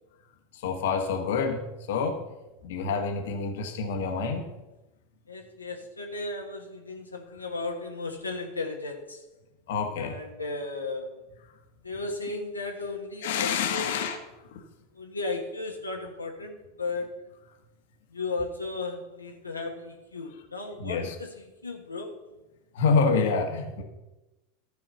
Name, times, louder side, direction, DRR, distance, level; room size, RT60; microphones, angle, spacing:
voice 1, 0.6-1.6 1.9-2.2 2.6-4.5 9.7-10.2 13.2-14.2 20.8-21.1 22.7-23.8, left 5 dB, 65° left, 5 dB, 1.4 m, -27 dB
voice 2, 5.3-9.2 10.0-11.2 11.8-13.9 14.9-17.2 18.1-22.2, left 3 dB, 90° left, 1 dB, 1.3 m, -35 dB
14.0 x 4.7 x 6.9 m, 1.0 s
figure-of-eight pair, 85°, 0 cm